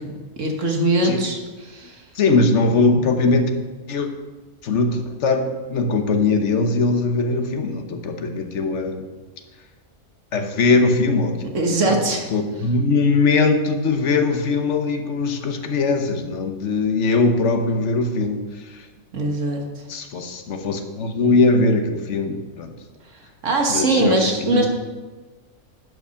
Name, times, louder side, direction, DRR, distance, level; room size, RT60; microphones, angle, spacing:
voice 1, 0.4-2.1 11.5-12.3 19.1-19.8 23.0-24.7, right 2 dB, 60° right, 2 dB, 1.7 m, -22 dB
voice 2, 2.1-3.5 3.9-4.1 4.6-9.1 10.3-11.5 11.9-12.0 12.3-18.9 19.9-22.7 23.7-24.7, left 3 dB, 60° left, 5 dB, 1.2 m, -20 dB
11.0 x 5.9 x 5.7 m, 1.3 s
omnidirectional pair, 1.5 m